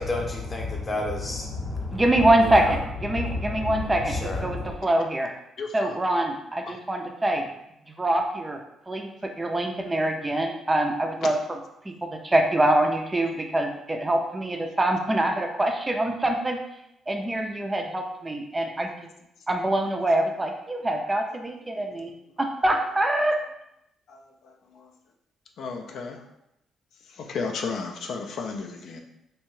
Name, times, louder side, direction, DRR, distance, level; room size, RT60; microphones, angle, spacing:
voice 1, 0.0-2.0 2.4-2.8 3.1-4.7, left 2 dB, 25° left, 0 dB, 0.7 m, -30 dB
voice 2, 1.9-5.3 5.7-7.5 8.0-8.6 8.9-9.1 9.4-11.6 12.0-16.6 17.1-18.9 19.5-22.1 22.4-23.4, right 1 dB, 20° right, 3 dB, 0.3 m, -24 dB
voice 3, 5.6-6.0 6.7-6.8 24.1-24.9 25.6-26.2 27.2-29.0, left 4 dB, 70° left, 2 dB, 0.3 m, -34 dB
2.7 x 2.2 x 3.0 m, 0.83 s
cardioid pair, 90°, 0 cm